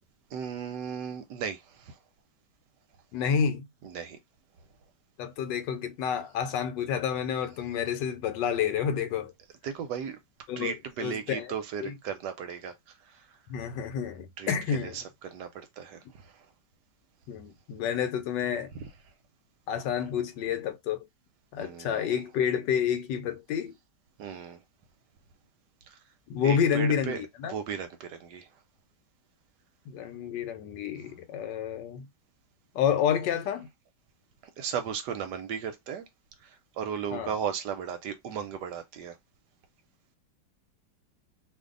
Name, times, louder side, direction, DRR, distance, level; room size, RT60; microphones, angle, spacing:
voice 1, 0.3-2.0 3.8-4.2 9.6-10.2 10.6-13.4 14.4-16.5 21.6-22.2 24.2-24.6 25.9-26.0 26.4-28.5 34.6-36.1 36.4-39.2, right 7 dB, 75° right, 1.2 m, -36 dB
voice 2, 3.1-3.7 5.2-9.3 10.5-10.7 11.0-11.5 11.8-11.9 13.5-15.0 17.3-18.7 19.7-21.0 21.5-23.7 26.3-27.5 29.9-32.1 32.7-33.7 37.1-37.3, left 8 dB, 75° left, 1.2 m, -29 dB
2.6 x 2.6 x 3.7 m
omnidirectional pair, 2.0 m